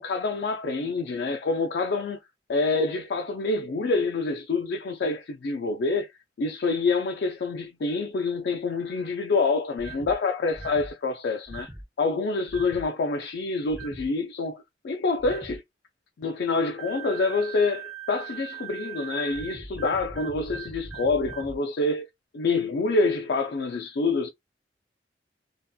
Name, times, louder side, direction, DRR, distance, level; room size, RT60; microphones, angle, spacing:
voice 1, 0.0-2.2 2.5-6.1 6.4-15.6 16.2-22.1 22.3-24.3, left 3 dB, 65° left, 0.3 m, -27 dB
sound 1, 9.8-10.1 10.5-10.9 11.5-11.8 12.5-12.9 13.7-14.1 15.2-15.6 16.8-21.6, right 5 dB, ahead, 0.4 m, -40 dB
2.8 x 2.2 x 2.2 m
head